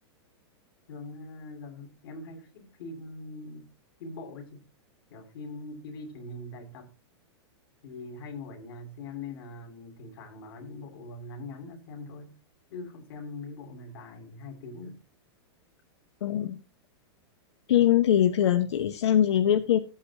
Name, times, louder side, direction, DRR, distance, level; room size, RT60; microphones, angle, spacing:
voice 1, 0.9-3.7 4.0-4.6 5.1-6.9 7.8-12.4 12.7-15.0, left 2 dB, 55° left, 2.5 m, -42 dB
voice 2, 16.2-16.6 17.7-19.8, left 10 dB, 80° left, 0.9 m, -22 dB
14.5 x 8.5 x 2.8 m
supercardioid pair, 170°, 14 cm